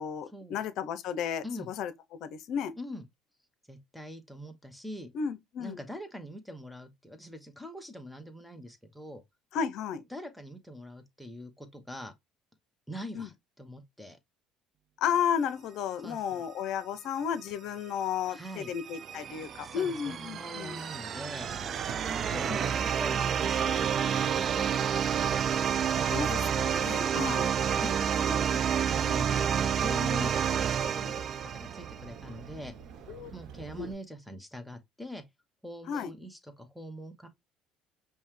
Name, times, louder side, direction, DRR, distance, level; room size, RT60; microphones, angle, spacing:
voice 1, 0.0-2.7 5.1-5.8 9.5-10.0 13.1-13.3 15.0-20.8 26.1-27.5 33.1-33.3 33.8-33.9 35.9-36.1, left 8 dB, 65° left, 0.6 m, -33 dB
voice 2, 3.7-5.1 5.6-9.2 10.1-12.1 12.9-13.3 13.6-14.2 16.0-16.4 18.3-18.7 19.6-21.5 22.2-26.1 27.1-32.7 33.3-35.2 35.6-37.3, equal, 5° left, 0.9 m, -43 dB
sound 1, 18.3-32.1, right 8 dB, 45° right, 0.3 m, -29 dB
Livestock farm animals working animals, 21.4-33.9, right 7 dB, 65° right, 0.7 m, -46 dB
5.4 x 2.2 x 3.1 m
supercardioid pair, 85°, 0 cm